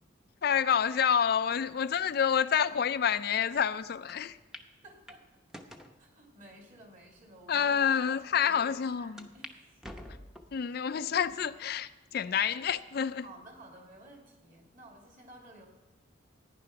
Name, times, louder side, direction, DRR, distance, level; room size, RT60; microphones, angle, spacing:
voice 1, 0.4-4.4 7.5-9.3 10.5-13.2, left 7 dB, 50° left, 0.4 m, -28 dB
sound 1, 4.1-4.2 4.5-4.7 5.1-5.9 6.6-6.7 7.4-7.5 7.8-7.9 9.2-9.6 9.8-10.6 11.1-11.6 12.1-12.2 13.4-13.8, equal, ahead, 0.8 m, -48 dB
voice 2, 4.8-5.3 6.0-10.0 13.2-15.7, right 1 dB, 40° right, 2.7 m, -54 dB
14.5 x 9.9 x 5.8 m
head